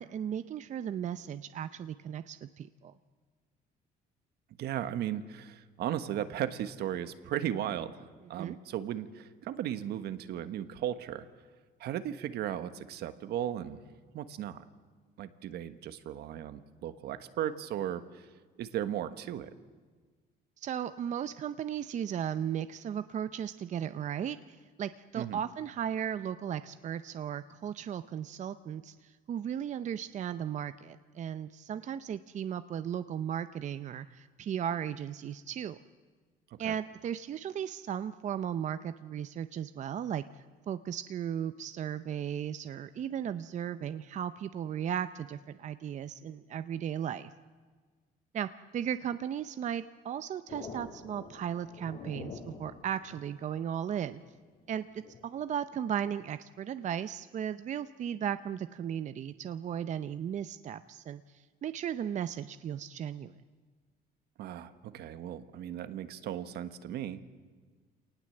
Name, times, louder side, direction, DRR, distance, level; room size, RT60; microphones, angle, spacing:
voice 1, 0.0-2.9 8.3-8.6 20.6-35.8 36.6-47.3 48.3-54.2 54.7-63.4, right 9 dB, 45° right, 12 dB, 0.7 m, -36 dB
voice 2, 4.6-11.3 11.8-13.8 14.1-14.6 15.2-18.3 18.6-19.5 25.2-25.4 36.6-36.7 64.4-67.2, right 11 dB, 75° right, 11 dB, 1.4 m, -36 dB
sound 1, 50.5-55.5, left 4 dB, 60° left, 6.7 m, -47 dB
27.0 x 19.0 x 7.8 m, 1.5 s
cardioid pair, 110°, 17 cm